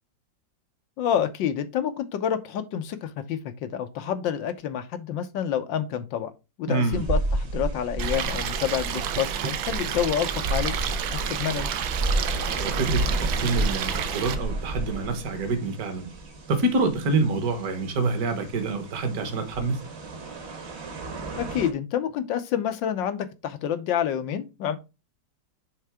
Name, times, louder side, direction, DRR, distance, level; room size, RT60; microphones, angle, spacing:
voice 1, 1.0-6.3 6.6-11.7 21.4-24.8, left 9 dB, 85° left, 1.6 m, -28 dB
voice 2, 6.7-7.0 12.6-13.0 13.4-16.1 16.5-19.8, right 3 dB, 55° right, 1.7 m, -26 dB
sound 1, 6.9-21.7, right 2 dB, 40° right, 1.3 m, -32 dB
Stream, 8.0-14.3, right 9 dB, 85° right, 1.5 m, -30 dB
8.9 x 3.7 x 3.6 m
omnidirectional pair, 2.0 m